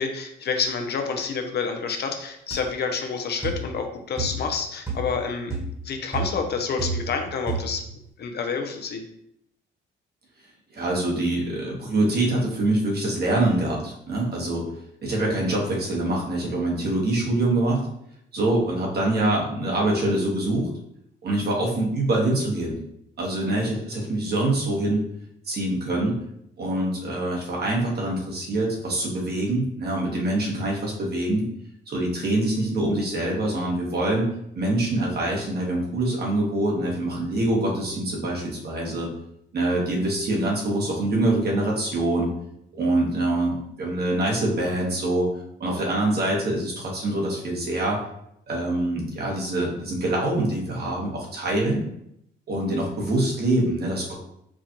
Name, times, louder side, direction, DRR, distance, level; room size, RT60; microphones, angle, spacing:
voice 1, 0.0-5.5 5.8-7.8 8.2-9.0, left 5 dB, 55° left, 5 dB, 0.6 m, -28 dB
sound 1, 2.5-2.7 3.4-3.7 4.2-4.5 4.9-5.2 5.5-5.8 6.1-7.2 7.5-7.9, right 3 dB, 15° right, 1.3 m, -30 dB
voice 2, 10.7-14.6 15.0-17.8 18.3-20.7 21.2-22.8 23.2-25.0 25.4-26.1 26.6-31.5 31.9-34.3 34.6-39.1 39.5-42.3 42.7-45.3 45.6-48.0 48.5-51.8 52.5-54.1, right 1 dB, 55° right, -2 dB, 1.3 m, -24 dB
4.9 x 2.4 x 2.9 m, 0.76 s
cardioid pair, 90°, 20 cm